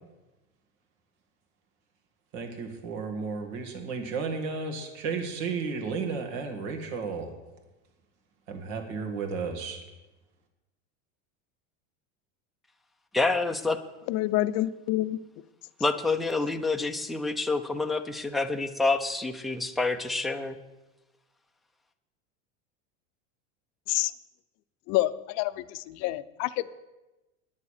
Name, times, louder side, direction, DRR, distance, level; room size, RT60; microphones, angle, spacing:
voice 1, 2.3-7.3 8.5-9.8, right 5 dB, 65° right, 5 dB, 2.3 m, -33 dB
voice 2, 13.1-13.8 15.8-20.6, left 3 dB, ahead, 4 dB, 0.5 m, -27 dB
voice 3, 14.1-15.2 23.9-24.1 24.9-26.7, left 15 dB, 45° left, 14 dB, 0.6 m, -28 dB
9.7 x 9.6 x 6.5 m, 1.1 s
supercardioid pair, 130°, 36 cm